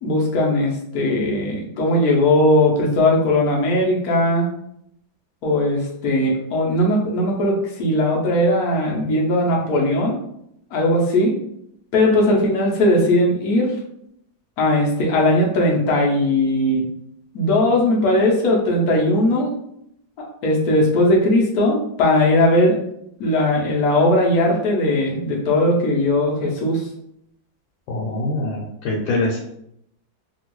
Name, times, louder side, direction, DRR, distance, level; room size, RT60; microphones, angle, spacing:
voice 1, 0.0-4.5 5.4-10.2 10.7-11.3 11.9-13.7 14.6-16.8 17.3-19.5 20.4-22.8 23.2-26.8, left 1 dB, 65° left, -1 dB, 1.0 m, -18 dB
voice 2, 27.9-29.4, left 2 dB, 85° left, -3 dB, 1.4 m, -24 dB
3.4 x 2.3 x 3.0 m, 0.75 s
omnidirectional pair, 2.1 m